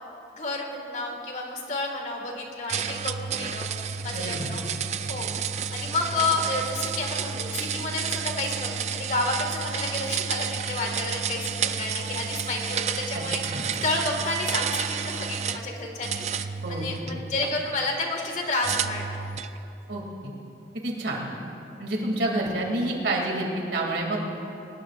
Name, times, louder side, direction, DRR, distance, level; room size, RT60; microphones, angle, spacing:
voice 1, 0.3-4.6 5.1-5.3 5.7-19.2, left 2 dB, 45° left, 1 dB, 2.0 m, -30 dB
sound 1, 2.7-15.6 16.0-17.5 18.6-19.6, right 6 dB, 40° right, 0.4 m, -31 dB
voice 2, 4.1-4.5 13.1-13.2 13.5-13.7 16.6-17.2 19.9-20.3 20.7-21.3 21.8-24.3, right 1 dB, 80° right, -1 dB, 2.7 m, -29 dB
22.5 x 19.5 x 2.6 m, 2.8 s
head